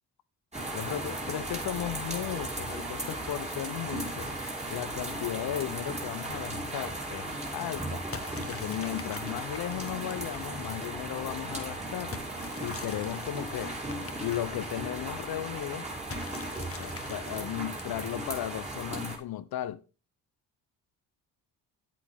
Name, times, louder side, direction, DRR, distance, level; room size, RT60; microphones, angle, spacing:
sound 1, 0.5-19.2, right 1 dB, 15° right, 2.9 m, -36 dB
voice 1, 0.7-4.3 4.7-8.0 8.3-12.1 12.6-13.7 14.2-15.9 16.7-19.8, left 12 dB, 65° left, 0.6 m, -35 dB
sound 2, 8.1-11.0 12.1-15.1 16.1-18.7, left 5 dB, 35° left, 1.1 m, -46 dB
8.4 x 8.0 x 3.5 m
supercardioid pair, 55°, 41 cm